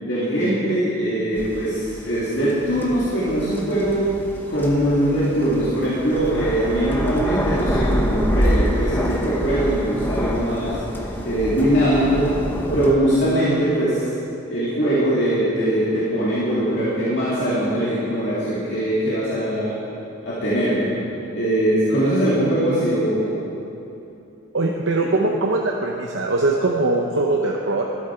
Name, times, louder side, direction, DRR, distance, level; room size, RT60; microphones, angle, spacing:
voice 1, 0.0-4.0 4.5-10.8 11.2-12.3 12.7-14.0 14.5-19.8 20.2-20.9 21.3-23.3 25.0-25.1, right 1 dB, 60° left, -9 dB, 2.2 m, -21 dB
sound 1, 1.4-12.9, equal, 10° left, 0.7 m, -26 dB
voice 2, 24.5-27.8, right 2 dB, 70° right, 0 dB, 0.7 m, -21 dB
12.5 x 12.0 x 4.5 m, 2.8 s
head